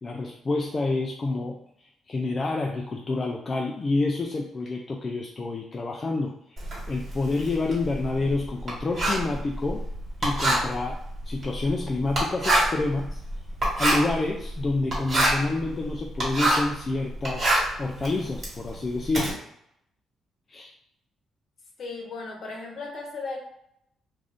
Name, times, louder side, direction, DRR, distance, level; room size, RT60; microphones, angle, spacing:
voice 1, 0.0-9.8 10.2-11.0 11.3-13.2 13.8-19.4 20.5-20.7, left 3 dB, 35° left, 0 dB, 0.3 m, -28 dB
Writing, 6.6-16.8 17.1-19.3, right 1 dB, 45° right, 1.5 m, -26 dB
voice 2, 21.8-23.4, left 3 dB, 55° left, 0 dB, 0.9 m, -36 dB
2.5 x 2.4 x 3.4 m, 0.76 s
cardioid pair, 90°, 0 cm